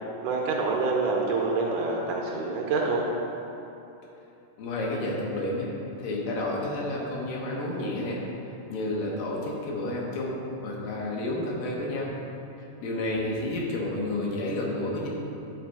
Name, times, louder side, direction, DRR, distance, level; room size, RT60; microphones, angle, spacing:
voice 1, 0.2-3.0, right 3 dB, 75° right, -1 dB, 2.0 m, -26 dB
voice 2, 4.6-5.7 6.0-8.2 8.7-12.1 12.8-15.1, left 1 dB, 80° left, -3 dB, 2.8 m, -30 dB
10.5 x 4.0 x 4.7 m, 2.9 s
omnidirectional pair, 4.0 m